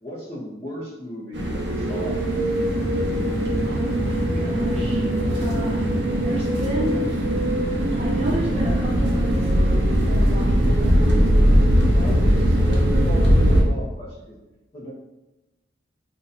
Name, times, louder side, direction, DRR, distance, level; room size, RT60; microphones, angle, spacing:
voice 1, 0.0-2.7 11.9-14.4 14.7-14.9, equal, 30° left, -9 dB, 0.6 m, -36 dB
sound 1, 1.3-13.6, equal, 60° right, 0.7 m, -20 dB
voice 2, 3.6-5.0 5.3-5.9 6.2-7.0 7.8-9.5 10.1-11.3, right 1 dB, 30° right, -5 dB, 1.0 m, -31 dB
2.6 x 2.3 x 4.0 m, 1.0 s
head